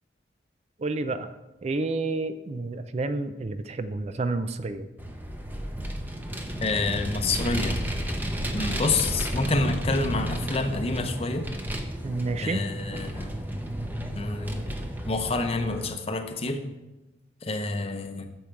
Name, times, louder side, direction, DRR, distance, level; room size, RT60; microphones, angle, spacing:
voice 1, 0.8-1.3 1.6-4.9 12.0-12.6, right 3 dB, 35° right, 11 dB, 0.4 m, -29 dB
Vehicle, 5.0-15.9, right 1 dB, 10° right, 0.7 m, -32 dB
voice 2, 6.6-7.8 8.5-11.5 12.4-13.3 14.2-14.8 15.1-16.6 17.4-18.3, left 3 dB, 35° left, 6 dB, 0.7 m, -28 dB
8.8 x 6.4 x 4.5 m, 1.1 s
head